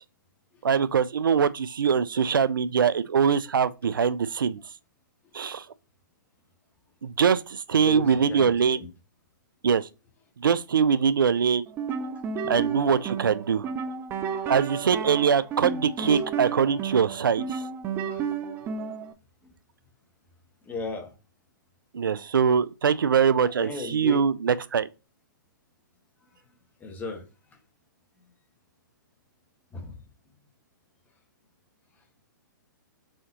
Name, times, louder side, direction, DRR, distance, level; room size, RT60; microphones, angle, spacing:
voice 1, 0.6-4.6 5.3-5.6 7.0-8.8 9.6-9.9 10.4-11.6 12.5-13.7 14.5-17.6 21.9-24.9, right 6 dB, 90° right, 0.4 m, -23 dB
voice 2, 7.7-8.8 12.4-12.5 16.1-16.2 18.1-18.2 20.6-21.1 23.6-24.2 26.8-27.2 29.7-29.9, left 3 dB, 15° left, 1.3 m, -36 dB
sound 1, 11.7-19.1, right 6 dB, 20° right, 0.5 m, -32 dB
4.2 x 3.8 x 2.9 m
hypercardioid pair, 135°, 11 cm